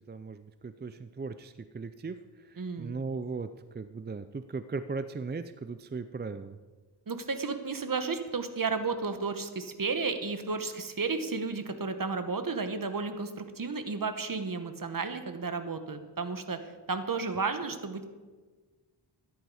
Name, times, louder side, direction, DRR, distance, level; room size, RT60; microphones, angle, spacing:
voice 1, 0.0-6.6, right 4 dB, 25° right, 11 dB, 0.4 m, -38 dB
voice 2, 2.6-2.9 7.1-16.6 16.9-18.0, right 4 dB, 50° right, 8 dB, 1.2 m, -33 dB
13.5 x 11.0 x 4.9 m, 1.4 s
wide cardioid pair, 100°, 43 cm